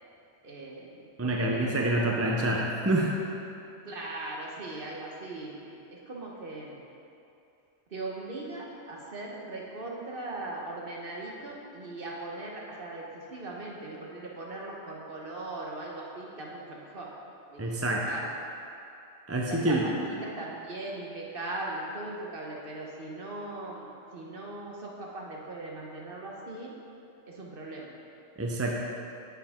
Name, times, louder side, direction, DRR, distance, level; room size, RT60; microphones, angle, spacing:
voice 1, 0.4-2.5 3.8-6.9 7.9-17.1 17.5-18.4 19.4-26.8 27.3-28.0, right 2 dB, 55° right, -3 dB, 1.2 m, -39 dB
voice 2, 1.2-3.1 17.6-18.1 19.3-19.9 28.4-28.8, right 1 dB, 20° right, -1 dB, 0.5 m, -27 dB
9.2 x 7.7 x 3.6 m, 2.7 s
omnidirectional pair, 1.2 m